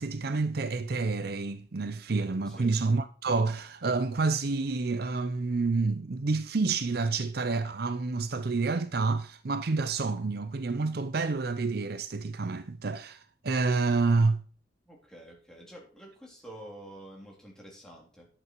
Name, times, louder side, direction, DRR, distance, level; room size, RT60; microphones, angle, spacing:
voice 1, 0.0-14.4, right 3 dB, 55° right, 0.6 m, -28 dB
voice 2, 2.5-2.8 14.8-18.3, right 1 dB, 5° left, 3.3 m, -48 dB
11.0 x 8.2 x 4.6 m
head